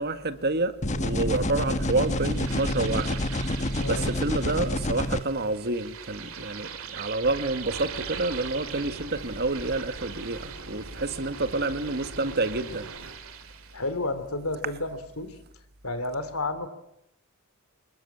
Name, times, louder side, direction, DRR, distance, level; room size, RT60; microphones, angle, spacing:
voice 1, 0.0-3.2 3.9-12.9, right 2 dB, 45° right, 1.8 m, -28 dB
sound 1, 0.8-5.2, left 1 dB, 35° left, 1.3 m, -28 dB
sound 2, 1.7-13.9, right 7 dB, 65° right, 3.0 m, -42 dB
voice 2, 3.8-4.1 13.7-15.4 15.8-16.7, left 2 dB, 70° left, 3.2 m, -31 dB
sound 3, 7.2-13.2, right 1 dB, 85° right, 4.3 m, -43 dB
26.5 x 21.5 x 8.7 m
head